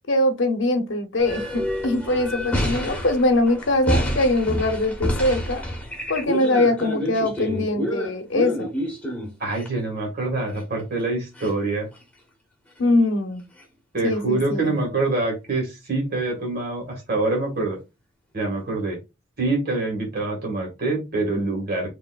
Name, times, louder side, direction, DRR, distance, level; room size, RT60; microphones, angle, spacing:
voice 1, 0.1-5.6 6.1-8.7 12.8-13.4 14.0-14.8, left 1 dB, 65° left, 0.8 m, -22 dB
sound 1, 1.2-9.7 10.5-10.6 11.0-11.1 11.4-11.5 12.0-12.1 13.6-13.7, equal, 5° left, 1.3 m, -28 dB
voice 2, 9.4-11.9 13.9-17.8 18.3-19.0 19.4-21.9, right 2 dB, 50° right, 1.8 m, -25 dB
5.2 x 2.9 x 2.4 m
head